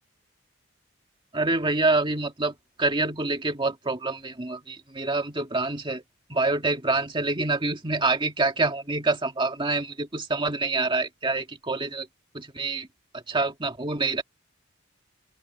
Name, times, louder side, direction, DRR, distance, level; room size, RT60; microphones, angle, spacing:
voice 1, 1.3-6.0 6.3-12.1 12.3-12.9 13.1-14.2, right 3 dB, 25° right, 2.0 m, -26 dB
open air
head